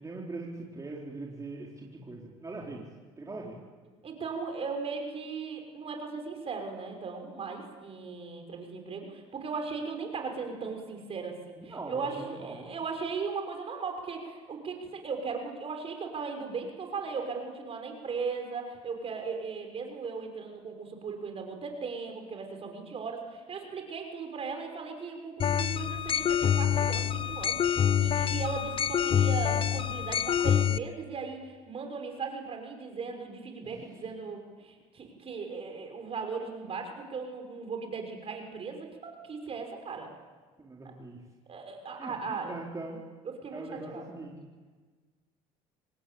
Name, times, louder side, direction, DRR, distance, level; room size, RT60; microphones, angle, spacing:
voice 1, 0.0-2.9 3.2-3.6 11.6-12.7 33.6-34.0 40.6-41.2 42.0-43.0 43.5-44.5, right 3 dB, 25° right, -2 dB, 4.3 m, -41 dB
voice 2, 4.0-40.1 41.5-42.5 43.4-44.1, right 5 dB, 45° right, 4 dB, 5.9 m, -37 dB
sound 1, 25.4-30.8, left 8 dB, 40° left, 0.8 m, -26 dB
26.5 x 19.5 x 8.8 m, 1.4 s
supercardioid pair, 80°, 14 cm